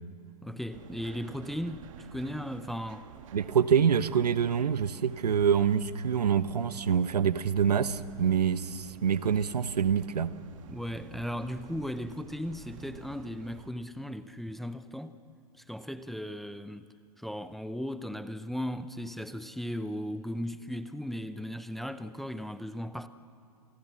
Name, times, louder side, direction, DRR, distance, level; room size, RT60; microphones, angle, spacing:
voice 1, 0.4-3.1 10.7-15.2 15.6-16.9 17.2-23.1, equal, ahead, 0.6 m, -37 dB
sound 1, 0.7-13.7, right 8 dB, 55° right, 1.8 m, -50 dB
voice 2, 3.3-10.3, right 7 dB, 80° right, 1.1 m, -26 dB
28.5 x 20.5 x 7.5 m
hypercardioid pair, 125°, 20 cm